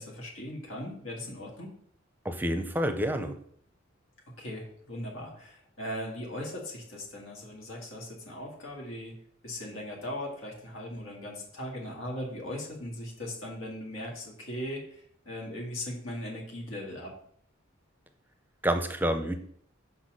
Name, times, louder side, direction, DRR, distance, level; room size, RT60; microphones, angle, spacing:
voice 1, 0.0-1.7 4.4-9.2 9.4-17.1, left 1 dB, 90° left, -2 dB, 2.0 m, -39 dB
voice 2, 2.2-3.4 18.6-19.4, equal, 10° right, 7 dB, 0.6 m, -28 dB
5.8 x 4.1 x 6.1 m, 0.63 s
head